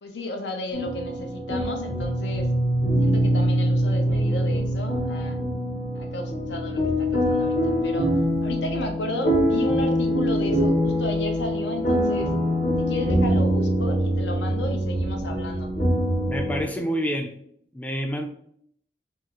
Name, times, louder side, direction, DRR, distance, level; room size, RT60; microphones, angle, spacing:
voice 1, 0.0-2.5 3.0-5.4 5.9-8.1 8.4-12.3 12.8-15.7, left 1 dB, 85° left, 5 dB, 0.6 m, -33 dB
sound 1, 0.7-16.6, equal, 40° left, 0.9 m, -24 dB
voice 2, 16.3-17.4 17.7-18.3, equal, 10° left, 4 dB, 0.3 m, -28 dB
3.5 x 2.4 x 2.9 m, 0.67 s
head